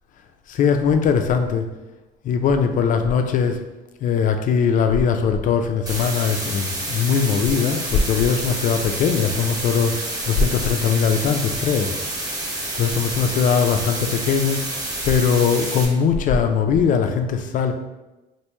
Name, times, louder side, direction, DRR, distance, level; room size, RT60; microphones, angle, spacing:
voice 1, 0.5-1.7 2.2-3.6 4.0-11.9 12.7-14.6 15.0-17.7, left 6 dB, 50° left, 6 dB, 0.4 m, -20 dB
sound 1, 5.9-15.9, right 2 dB, 20° right, 0.9 m, -29 dB
3.3 x 2.6 x 3.0 m, 1.1 s
cardioid pair, 110°, 17 cm